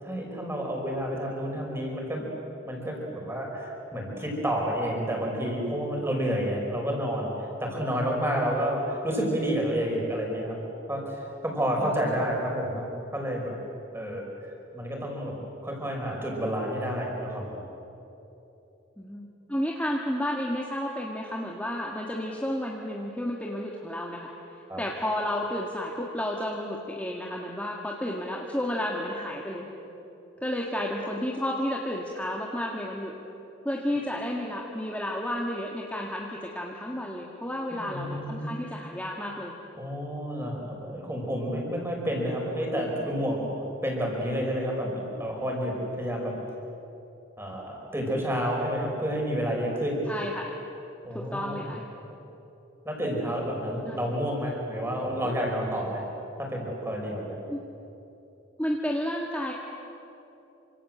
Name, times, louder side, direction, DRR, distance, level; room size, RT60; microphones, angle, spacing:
voice 1, 0.0-2.3 2.6-10.6 10.9-13.5 13.9-14.3 14.7-15.3 15.6-17.6 24.7-24.8 37.7-38.5 39.8-46.4 47.4-50.0 51.0-51.7 52.8-56.0 56.4-57.4, equal, 10° right, -1 dB, 5.7 m, -30 dB
voice 2, 11.8-12.2 19.0-24.3 24.8-29.7 30.4-33.1 33.6-39.5 50.1-50.5 51.1-51.8 53.9-54.1 57.5-57.6 58.6-59.5, left 1 dB, 5° left, -1 dB, 1.8 m, -32 dB
28.0 x 26.0 x 7.8 m, 3.0 s
head